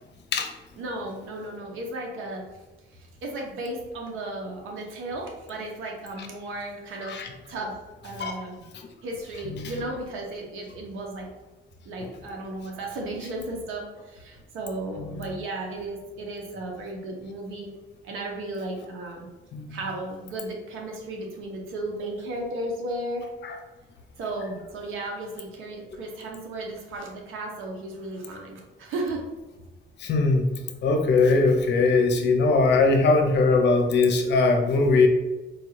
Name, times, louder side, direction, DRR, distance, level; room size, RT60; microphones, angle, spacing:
voice 1, 0.8-2.4 2.9-7.2 7.5-7.8 8.0-8.6 9.0-11.3 11.8-17.7 18.0-19.3 19.7-23.2 24.2-29.2, right 2 dB, 85° right, 0 dB, 0.8 m, -34 dB
voice 2, 15.0-15.3 19.5-19.8 23.4-23.5 30.0-30.5 30.8-35.1, left 3 dB, 60° left, 4 dB, 0.6 m, -21 dB
4.5 x 2.3 x 3.1 m, 1.1 s
cardioid pair, 90°, 20 cm